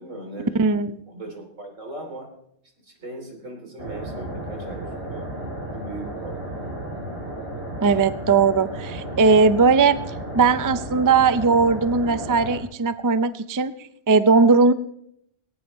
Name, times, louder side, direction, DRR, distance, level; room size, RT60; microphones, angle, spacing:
voice 1, 0.0-0.7 1.1-2.3 2.8-5.3 5.7-6.6, right 2 dB, 90° right, 2 dB, 3.5 m, -38 dB
voice 2, 0.6-1.0 7.8-10.0 10.3-14.7, right 4 dB, 30° right, 12 dB, 0.4 m, -18 dB
sound 1, 3.8-12.6, right 1 dB, 50° right, 3.8 m, -33 dB
19.0 x 18.0 x 3.1 m, 0.72 s
omnidirectional pair, 1.3 m